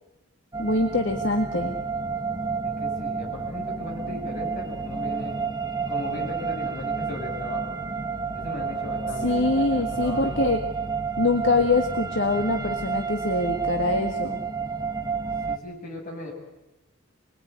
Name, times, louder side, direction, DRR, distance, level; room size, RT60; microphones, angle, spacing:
sound 1, 0.5-15.6, right 5 dB, 20° right, 1.2 m, -30 dB
voice 1, 0.6-1.8 9.2-10.6 11.2-14.4, left 2 dB, 60° left, 5 dB, 1.7 m, -24 dB
voice 2, 2.6-5.4 5.9-7.7 8.3-10.5 15.5-16.3, left 2 dB, 40° left, -1 dB, 7.3 m, -37 dB
25.0 x 21.0 x 9.6 m, 0.99 s
head